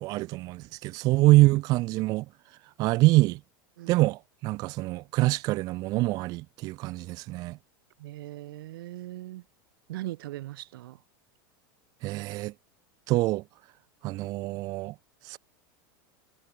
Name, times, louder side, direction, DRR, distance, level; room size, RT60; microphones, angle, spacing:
voice 1, 0.0-2.2 2.8-3.4 3.9-7.6 12.0-12.5 13.1-13.4 14.0-14.9 15.2-15.4, right 20 dB, 35° right, 0.3 m, -25 dB
voice 2, 8.0-9.4 9.9-11.0, right 16 dB, 75° right, 1.5 m, -39 dB
supercardioid pair, 155°, 12 cm